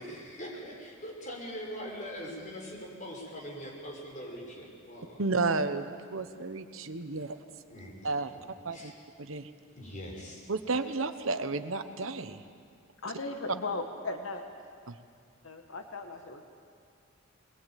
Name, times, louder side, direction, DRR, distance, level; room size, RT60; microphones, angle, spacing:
voice 1, 0.0-5.2 7.7-8.0 8.7-8.9 9.8-10.5, equal, 40° left, -2 dB, 5.9 m, -42 dB
voice 2, 5.2-7.4 8.0-8.4 8.6-8.9 9.2-9.5 10.5-12.4 14.9-15.0, right 3 dB, 75° right, 9 dB, 1.1 m, -32 dB
voice 3, 13.0-14.4 15.4-16.4, left 3 dB, 75° left, 4 dB, 1.7 m, -37 dB
21.5 x 21.0 x 9.2 m, 2.2 s
head